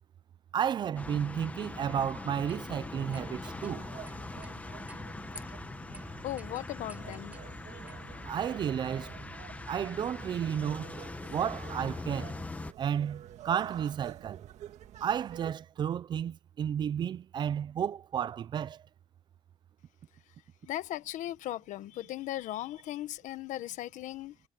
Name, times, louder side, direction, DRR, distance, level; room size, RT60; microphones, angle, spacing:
voice 1, 0.5-3.9 8.2-9.1 9.7-11.0 11.3-12.3 12.8-14.5 15.0-18.8, right 8 dB, 35° right, 0.4 m, -32 dB
sound 1, 1.0-12.7, left 3 dB, 10° left, 1.1 m, -42 dB
sound 2, 2.5-2.6 3.1-3.7 4.1-4.6 4.9-5.0 5.4-5.6 5.9-6.0 6.4-7.5 7.9-8.1, right 2 dB, 10° right, 5.9 m, -52 dB
sound 3, 2.9-15.5, right 12 dB, 60° right, 1.8 m, -49 dB
voice 2, 6.2-7.3 20.6-24.4, left 14 dB, 75° left, 1.3 m, -37 dB
cardioid pair, 170°, 13 cm